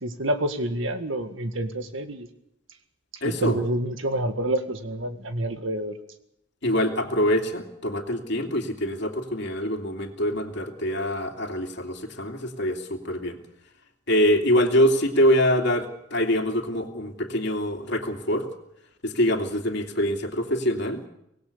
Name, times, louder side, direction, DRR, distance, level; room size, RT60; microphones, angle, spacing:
voice 1, 0.0-2.3 3.2-6.0, right 1 dB, 70° right, 8 dB, 1.9 m, -28 dB
voice 2, 3.2-3.6 6.6-13.4 14.1-18.5 19.0-21.0, equal, 60° left, 4 dB, 2.7 m, -24 dB
25.0 x 19.0 x 6.8 m, 0.80 s
head